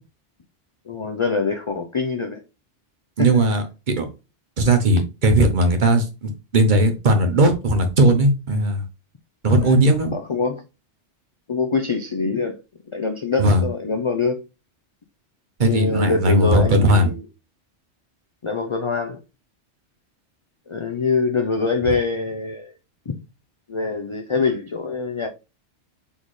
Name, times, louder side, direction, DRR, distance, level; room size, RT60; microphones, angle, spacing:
voice 1, 0.9-2.4 3.2-3.3 9.5-9.8 10.1-10.6 11.5-12.6 12.9-14.4 15.6-17.2 18.4-19.2 20.7-22.7 23.1-23.2 23.7-25.3, left 4 dB, 50° left, 0.3 m, -24 dB
voice 2, 3.2-4.1 4.6-8.8 9.4-10.1 13.4-13.7 15.6-17.1, right 1 dB, 45° right, 0.9 m, -18 dB
4.2 x 3.5 x 3.1 m
omnidirectional pair, 1.2 m